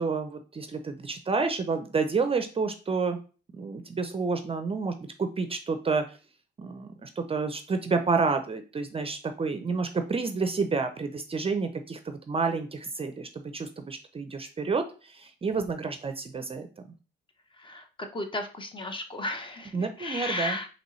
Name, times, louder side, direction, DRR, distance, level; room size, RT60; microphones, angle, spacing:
voice 1, 0.0-3.2 3.5-6.2 6.6-16.7 19.7-20.6, right 4 dB, 30° right, 8 dB, 0.5 m, -29 dB
voice 2, 18.1-20.7, left 2 dB, 25° left, 6 dB, 0.8 m, -34 dB
5.1 x 3.0 x 3.1 m, 0.36 s
cardioid pair, 90°, 20 cm